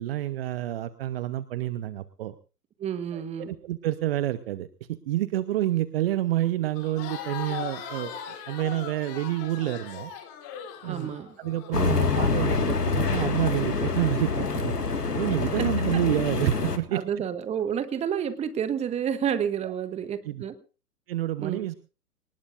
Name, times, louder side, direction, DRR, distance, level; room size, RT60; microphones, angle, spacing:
voice 1, 0.0-2.3 3.1-10.1 10.8-14.7 15.1-17.0 19.6-19.7 20.2-20.4 21.1-21.7, right 14 dB, 40° right, 14 dB, 1.0 m, -29 dB
voice 2, 2.8-3.5 10.9-11.3 16.9-20.5 21.4-21.6, right 8 dB, 15° right, 12 dB, 1.4 m, -29 dB
Crowd, 6.7-11.7, left 8 dB, 30° left, 3.6 m, -39 dB
sound 1, 11.7-16.8, left 4 dB, 85° left, 1.9 m, -26 dB
25.0 x 19.5 x 2.5 m, 0.34 s
figure-of-eight pair, 115°, 46 cm